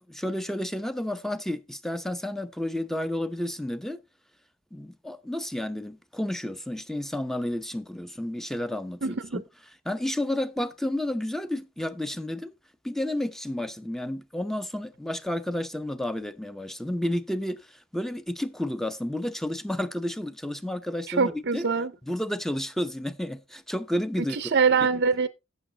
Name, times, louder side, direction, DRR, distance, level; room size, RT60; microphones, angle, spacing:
voice 1, 0.0-4.0 4.7-9.0 9.3-9.4 9.8-12.5 12.8-21.7 22.0-24.4, left 1 dB, ahead, 0.7 m, -31 dB
voice 2, 9.0-9.4 21.1-21.9 24.3-25.3, right 5 dB, 50° right, 0.6 m, -24 dB
15.0 x 6.9 x 3.9 m
head